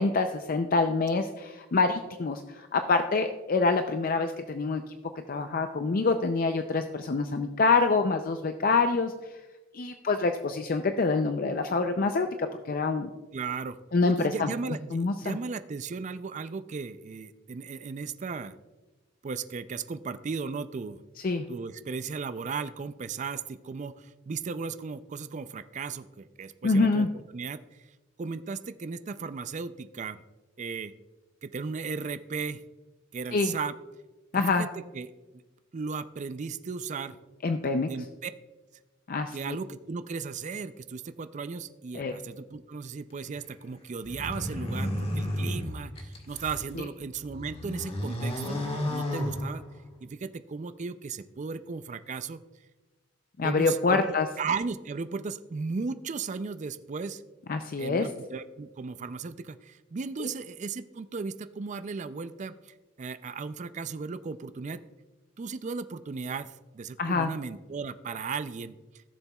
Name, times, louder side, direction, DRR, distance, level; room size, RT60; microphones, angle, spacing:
voice 1, 0.0-4.8 5.3-9.1 9.7-13.1 13.9-14.5 14.9-15.4 21.2-21.5 26.6-27.1 33.3-33.5 34.3-34.7 37.4-37.9 39.1-39.6 41.9-42.1 53.4-54.3 57.5-58.1 60.2-60.3 67.0-67.3, left 3 dB, 50° left, 7 dB, 0.5 m, -26 dB
voice 2, 13.3-13.8 14.0-18.5 19.2-21.0 21.5-27.8 28.2-30.2 30.6-30.9 31.4-32.6 33.1-33.7 34.3-34.7 34.9-35.1 35.7-37.2 37.9-38.3 39.3-48.6 48.9-49.6 50.0-52.4 53.4-57.2 57.8-64.8 65.4-68.8, right 5 dB, 40° right, 12 dB, 0.4 m, -36 dB
sound 1, 44.0-46.7 47.2-50.0, left 1 dB, 30° left, 1.4 m, -32 dB
16.0 x 7.1 x 2.3 m, 1.2 s
head